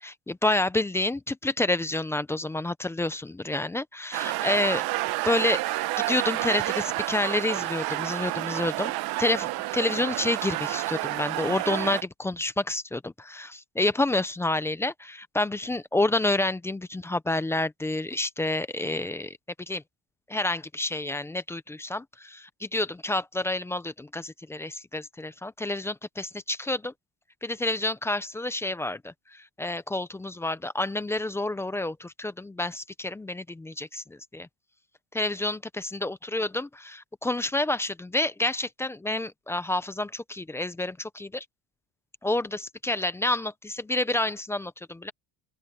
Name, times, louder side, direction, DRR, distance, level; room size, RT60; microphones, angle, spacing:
voice 1, 0.0-4.8 5.2-5.6 6.1-8.9 9.2-19.4 19.7-19.8 20.3-26.9 27.4-34.5 35.1-41.5 42.2-45.1, left 2 dB, 5° left, 0.3 m, -29 dB
sound 1, 4.1-12.0, right 18 dB, 55° right, 0.8 m, -29 dB
open air
cardioid pair, 150°, 45 cm